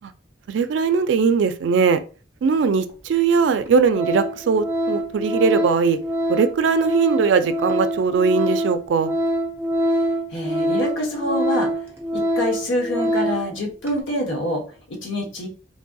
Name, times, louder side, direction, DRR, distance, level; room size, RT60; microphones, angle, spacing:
voice 1, 0.5-2.0 2.4-6.0 6.3-9.1, right 5 dB, 75° right, 11 dB, 0.3 m, -20 dB
Organ, 2.9-3.0 3.5-3.7 3.9-13.5 13.8-14.0, equal, 15° right, 0.6 m, -24 dB
voice 2, 10.3-11.7 12.1-14.6 14.9-15.5, equal, 85° left, 1 dB, 1.0 m, -26 dB
3.1 x 2.6 x 2.2 m, 0.37 s
head